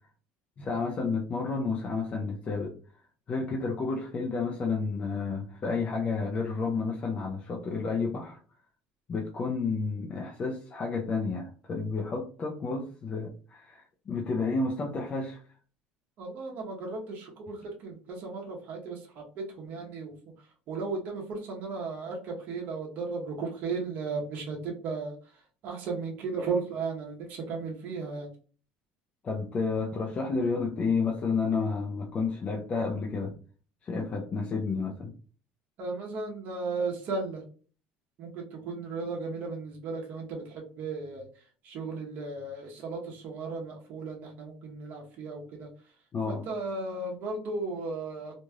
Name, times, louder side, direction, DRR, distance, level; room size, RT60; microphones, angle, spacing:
voice 1, 0.6-2.7 3.3-8.4 9.1-15.4 29.2-33.3 33.8-35.1 46.1-46.4, left 4 dB, 35° left, 0 dB, 0.5 m, -31 dB
voice 2, 16.2-20.1 20.7-25.1 25.6-28.3 35.8-37.4 38.2-41.3 41.6-45.7 46.3-48.4, right 4 dB, 55° right, -1 dB, 0.8 m, -35 dB
3.1 x 2.5 x 2.2 m, 0.40 s
supercardioid pair, 105°, 4 cm